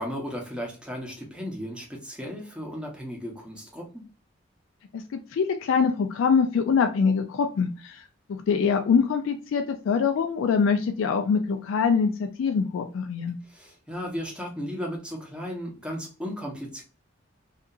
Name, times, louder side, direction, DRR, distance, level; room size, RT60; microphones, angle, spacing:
voice 1, 0.0-4.0 13.4-16.8, equal, 5° right, -1 dB, 0.7 m, -35 dB
voice 2, 5.3-8.0 8.5-13.4, left 6 dB, 75° left, 6 dB, 0.3 m, -24 dB
2.8 x 2.4 x 2.3 m, 0.36 s
head